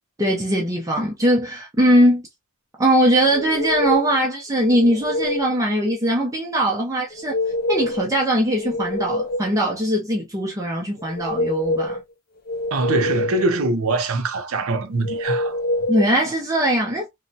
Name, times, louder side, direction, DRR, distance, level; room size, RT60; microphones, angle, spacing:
voice 1, 0.2-2.2 2.8-7.3 7.7-12.0 15.9-17.1, equal, 15° right, 0.5 m, -20 dB
sound 1, 3.3-4.2 4.7-5.5 7.1-8.1 8.5-9.6 11.0-12.0 12.5-13.5 15.0-16.1, left 1 dB, 40° left, 0.5 m, -25 dB
voice 2, 12.7-15.6, right 2 dB, 75° right, 0.6 m, -23 dB
3.0 x 2.1 x 2.7 m
head